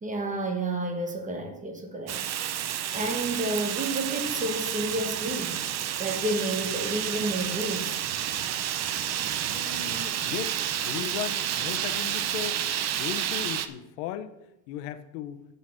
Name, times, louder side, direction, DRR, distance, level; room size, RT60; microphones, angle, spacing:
voice 1, 0.0-2.2 2.9-5.6 6.0-8.0, right 1 dB, 15° right, 1.2 m, -30 dB
Fire, 2.1-13.7, right 10 dB, 35° right, 0.6 m, -30 dB
voice 2, 9.5-12.6 12.9-14.3 14.7-15.4, left 11 dB, 75° left, 1.0 m, -36 dB
8.2 x 6.7 x 6.2 m
cardioid pair, 145°, 49 cm